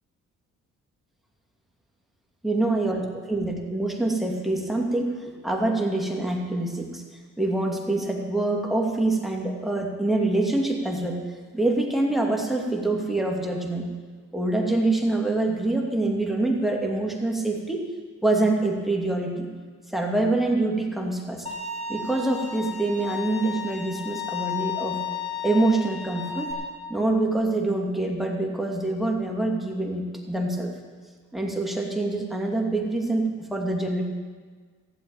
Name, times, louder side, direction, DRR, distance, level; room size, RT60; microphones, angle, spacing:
voice 1, 2.4-5.1 5.4-7.0 7.4-11.2 11.5-13.9 14.3-17.8 18.2-19.5 19.9-21.5 21.9-25.0 25.4-26.5 26.9-30.7 31.3-34.0, right 2 dB, ahead, 0 dB, 2.6 m, -25 dB
Bowed string instrument, 21.5-26.5, left 7 dB, 20° left, 3.4 m, -33 dB
15.5 x 7.7 x 9.0 m, 1.5 s
cardioid pair, 90°, 30 cm